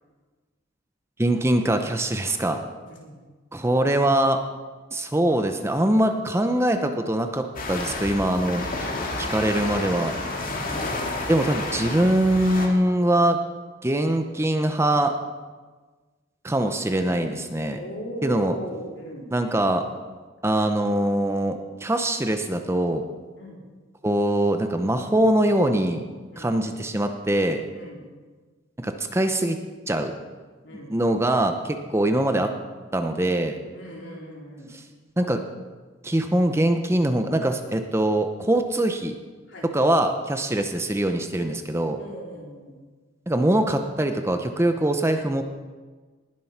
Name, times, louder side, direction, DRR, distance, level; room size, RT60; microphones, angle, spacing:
voice 1, 1.2-2.6 3.5-4.4 4.9-8.6 9.2-10.1 11.3-13.4 13.8-15.1 16.4-17.8 18.2-18.5 19.3-19.8 20.4-23.0 24.0-26.0 26.4-27.6 28.8-29.6 29.9-30.1 30.9-32.5 32.9-33.6 35.2-35.4 36.0-39.1 39.7-42.0 43.3-45.4, right 1 dB, 15° right, 6 dB, 0.7 m, -23 dB
sound 1, 7.6-12.7, left 2 dB, 45° left, 2.2 m, -30 dB
voice 2, 8.8-9.1 10.4-11.0 17.7-19.3 23.4-23.6 26.3-26.6 27.7-28.1 30.6-30.9 33.7-34.7 39.5-39.7 42.0-42.7, equal, 65° left, -2 dB, 4.0 m, -39 dB
19.5 x 7.6 x 5.9 m, 1.4 s
head